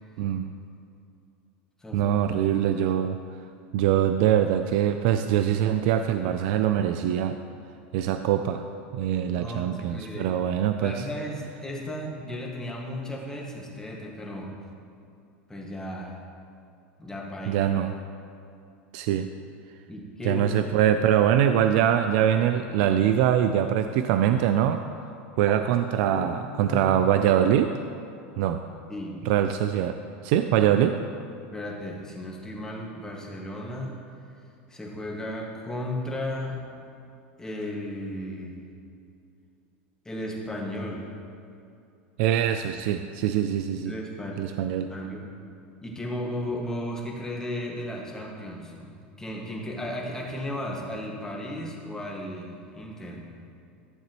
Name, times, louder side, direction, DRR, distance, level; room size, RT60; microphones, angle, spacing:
voice 1, 0.2-0.5 1.9-3.2 3.7-7.4 7.9-8.6 8.9-11.0 17.5-17.9 18.9-19.3 20.2-24.8 25.4-27.7 28.4-28.6 29.2-30.0 30.2-31.0 42.2-43.9 44.4-44.9, right 10 dB, 65° right, 8 dB, 0.4 m, -23 dB
voice 2, 1.8-2.2 9.3-10.3 10.7-14.5 15.5-16.2 17.0-17.7 19.9-20.6 25.5-25.6 25.9-26.2 26.6-27.0 28.9-29.3 29.7-29.9 31.5-34.0 34.7-36.7 37.4-38.7 40.0-41.1 43.8-44.4 44.9-45.2 45.8-53.3, left 1 dB, 10° left, -2 dB, 1.8 m, -35 dB
13.5 x 7.3 x 3.0 m, 2.6 s
hypercardioid pair, 105°, 6 cm